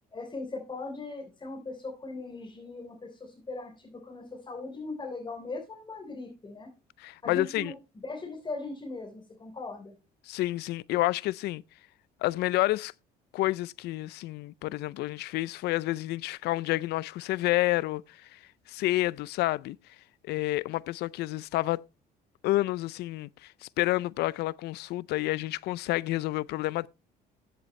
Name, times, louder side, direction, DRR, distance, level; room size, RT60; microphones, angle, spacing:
voice 1, 0.1-6.7 7.2-7.8 8.0-9.9, left 3 dB, 25° left, 3.7 m, -39 dB
voice 2, 7.0-7.7 10.3-11.6 12.2-12.9 13.3-18.4 18.7-19.8 20.3-21.8 22.4-26.9, left 17 dB, 80° left, 0.5 m, -29 dB
14.5 x 7.9 x 3.2 m
cardioid pair, 110°, 17 cm